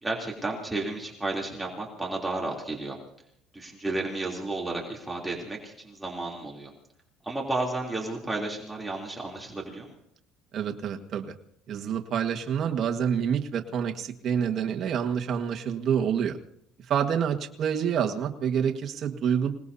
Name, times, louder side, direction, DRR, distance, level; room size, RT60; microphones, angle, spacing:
voice 1, 0.0-3.0 3.5-6.7 7.2-9.9, right 2 dB, 10° right, -2 dB, 3.2 m, -32 dB
voice 2, 10.5-11.3 11.7-16.4 16.9-19.5, right 8 dB, 45° right, 4 dB, 1.6 m, -27 dB
27.0 x 19.0 x 2.8 m, 0.69 s
cardioid pair, 125°, 0 cm